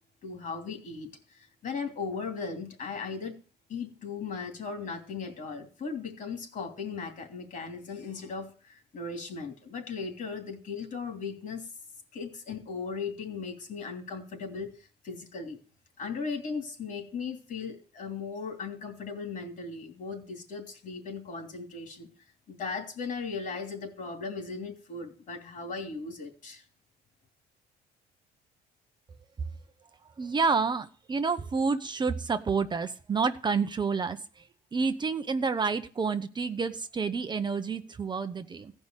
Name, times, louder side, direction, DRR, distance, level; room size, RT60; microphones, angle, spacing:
voice 1, 0.2-1.1 1.6-3.4 3.7-11.7 12.1-14.8 15.0-15.6 16.0-22.1 22.5-26.6, left 5 dB, 50° left, 6 dB, 3.0 m, -37 dB
voice 2, 30.2-34.4 34.7-38.7, right 5 dB, 25° right, 9 dB, 0.7 m, -29 dB
15.5 x 5.5 x 8.1 m, 0.39 s
cardioid pair, 110°, 17 cm